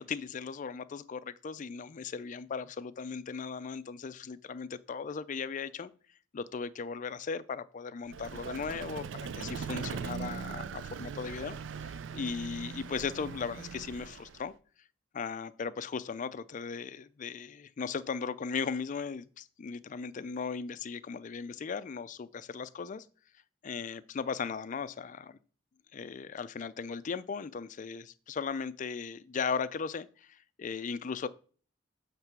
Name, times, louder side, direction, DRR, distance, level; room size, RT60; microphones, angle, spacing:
voice 1, 0.0-5.9 6.3-14.5 15.1-23.1 23.6-25.4 25.9-31.3, left 5 dB, 45° left, 0.4 m, -37 dB
Vehicle, 8.1-14.5, right 6 dB, 70° right, 0.4 m, -40 dB
7.4 x 3.3 x 5.9 m
head